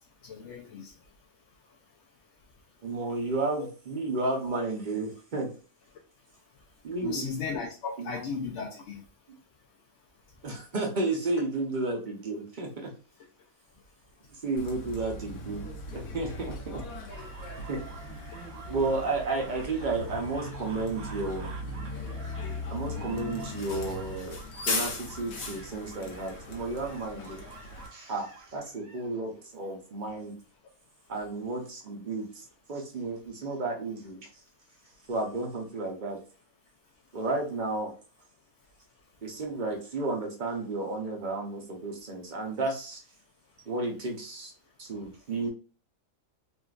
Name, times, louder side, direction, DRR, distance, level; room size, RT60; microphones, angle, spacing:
voice 1, 0.2-0.9 3.6-3.7 7.0-9.0, left 5 dB, 65° left, -2 dB, 0.8 m, -35 dB
voice 2, 2.8-5.5 6.8-7.3 10.4-12.9 14.4-16.8 17.7-18.0 18.7-21.5 22.7-24.4 24.7-27.4 27.9-30.4 31.1-34.3 35.1-36.2 37.1-37.9 39.2-43.0 43.7-44.5 44.8-45.5, right 3 dB, 45° right, 1 dB, 0.7 m, -32 dB
Bus, 14.6-27.9, left 2 dB, 85° left, 1.2 m, -38 dB
sound 1, 17.1-29.1, right 4 dB, 65° right, 1.0 m, -48 dB
3.6 x 2.5 x 2.4 m, 0.36 s
omnidirectional pair, 1.5 m